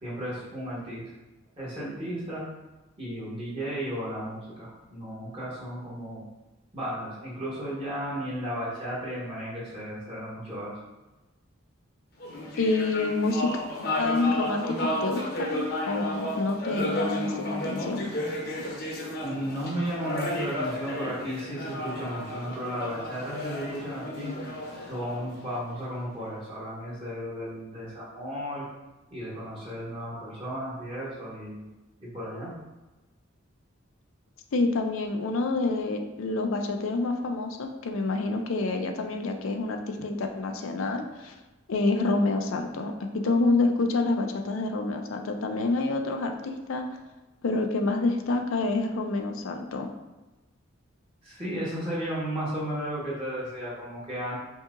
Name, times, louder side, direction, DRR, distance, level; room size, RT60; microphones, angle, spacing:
voice 1, 0.0-1.1 1.6-2.4 3.0-6.3 6.7-10.8 19.2-24.3 24.7-28.6 29.1-31.7 32.0-32.5 51.2-54.4, equal, 25° right, -8 dB, 1.2 m, -34 dB
sound 1, 12.2-25.9, left 1 dB, 50° left, 0.8 m, -33 dB
voice 2, 12.6-13.6 14.0-18.1 34.5-41.3 41.7-46.8 47.4-49.9, left 3 dB, 80° left, 4 dB, 0.5 m, -27 dB
5.4 x 2.8 x 2.5 m, 1.1 s
head